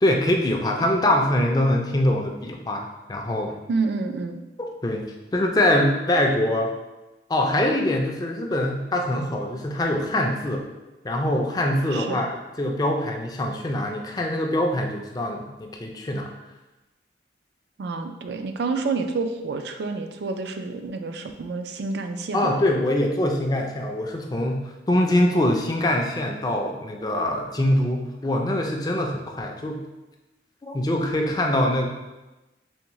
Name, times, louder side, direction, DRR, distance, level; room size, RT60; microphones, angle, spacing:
voice 1, 0.0-3.5 4.6-5.0 5.3-6.7 7.3-10.7 11.0-12.3 12.6-16.3 22.3-24.6 24.9-29.8 30.6-31.9, left 1 dB, 20° left, 1 dB, 0.3 m, -23 dB
voice 2, 3.7-4.4 11.9-12.2 17.8-22.6, right 4 dB, 70° right, 7 dB, 0.3 m, -28 dB
3.5 x 3.4 x 3.0 m, 1.1 s
head